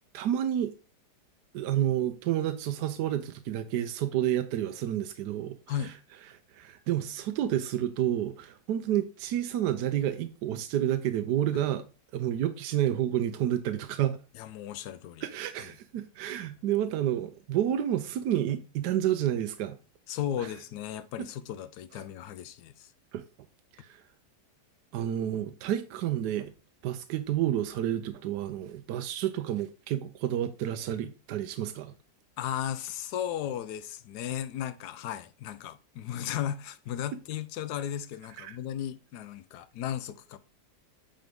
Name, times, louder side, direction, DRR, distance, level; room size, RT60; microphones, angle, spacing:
voice 1, 0.1-0.7 1.5-5.6 6.3-11.9 12.1-14.2 15.2-19.8 20.4-20.5 21.2-21.3 23.1-23.2 23.7-24.0 24.9-26.5 26.8-31.9 38.4-38.6, right 11 dB, 75° right, 1.2 m, -30 dB
voice 2, 14.3-15.3 20.1-22.9 32.4-40.4, left 10 dB, 75° left, 1.2 m, -35 dB
8.8 x 3.8 x 3.5 m
omnidirectional pair, 1.8 m